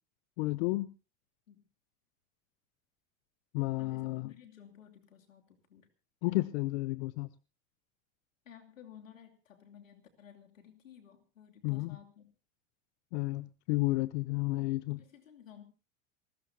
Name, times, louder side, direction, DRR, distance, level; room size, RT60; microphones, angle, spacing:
voice 1, 0.4-0.9 3.5-4.3 6.2-7.3 11.6-12.0 13.1-15.0, left 21 dB, 60° left, 18 dB, 0.7 m, -32 dB
voice 2, 3.8-5.9 8.4-12.3 14.9-15.6, left 9 dB, 90° left, 4 dB, 2.9 m, -55 dB
28.5 x 14.0 x 2.8 m, 0.31 s
hypercardioid pair, 95°, 38 cm